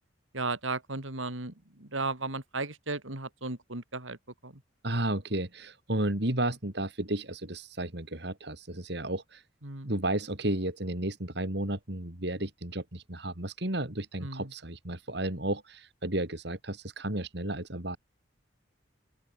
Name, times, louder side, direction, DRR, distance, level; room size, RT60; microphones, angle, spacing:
voice 1, 0.3-4.2 4.4-4.5 9.6-9.9 14.2-14.5, right 3 dB, 80° right, 3.8 m, -35 dB
voice 2, 4.8-9.4 9.8-18.0, right 1 dB, 60° right, 3.2 m, -33 dB
open air
head